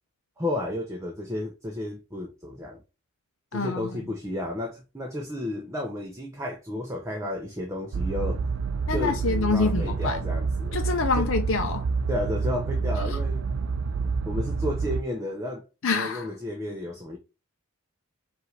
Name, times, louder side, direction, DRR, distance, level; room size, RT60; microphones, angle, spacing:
voice 1, 0.4-2.8 3.5-8.4 8.9-10.8 11.1-11.3 12.1-13.5 14.0-15.6 15.9-17.2, left 1 dB, 15° right, 0.7 m, -32 dB
voice 2, 3.5-4.0 8.9-10.2 10.7-11.8 13.0-13.2 15.8-16.3, left 4 dB, 60° left, 0.5 m, -26 dB
sound 1, 7.9-15.0, right 4 dB, 65° right, 0.4 m, -28 dB
5.3 x 2.6 x 3.2 m
head